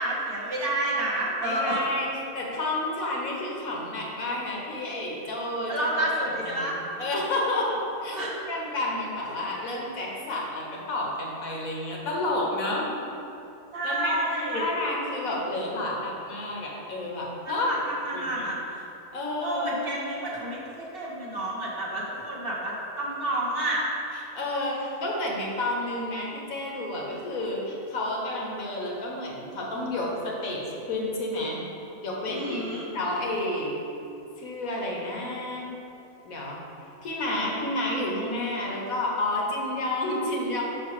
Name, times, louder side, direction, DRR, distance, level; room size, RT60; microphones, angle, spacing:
voice 1, 0.0-1.8 5.7-6.8 8.1-8.4 9.3-9.4 13.7-14.7 17.5-18.8 19.4-23.9 24.5-25.0 32.3-32.8, right 1 dB, 45° right, -4 dB, 1.0 m, -30 dB
voice 2, 1.4-8.2 8.5-12.9 13.8-17.7 18.1-18.5 19.1-19.8 24.3-31.6 32.0-33.8 34.4-35.7 36.2-36.6 37.0-40.6, left 1 dB, 80° left, -2 dB, 1.5 m, -30 dB
6.2 x 4.1 x 4.8 m, 2.8 s
omnidirectional pair, 1.5 m